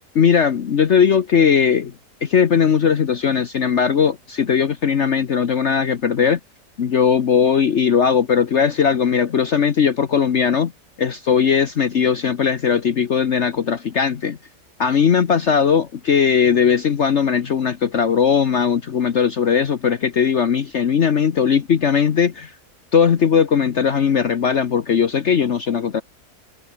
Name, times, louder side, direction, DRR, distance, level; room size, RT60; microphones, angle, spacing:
voice 1, 0.1-1.9 2.2-6.4 6.8-10.7 11.0-14.4 14.8-22.5 22.9-26.0, left 7 dB, 50° left, 1.3 m, -18 dB
omnidirectional pair, 1.6 m